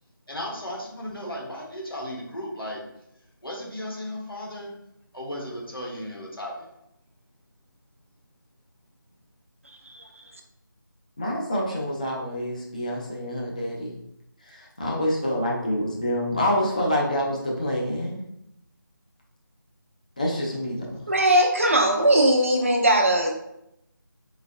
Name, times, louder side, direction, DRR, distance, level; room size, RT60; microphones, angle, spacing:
voice 1, 0.3-2.8 3.4-4.7 5.1-6.7, left 1 dB, 90° left, -3 dB, 1.4 m, -35 dB
voice 2, 11.2-14.0 14.5-18.2 20.2-21.1, equal, 20° left, -2 dB, 0.6 m, -27 dB
voice 3, 21.1-23.3, right 1 dB, 40° right, 2 dB, 0.6 m, -19 dB
4.1 x 3.9 x 2.6 m, 0.81 s
figure-of-eight pair, 165°, 12 cm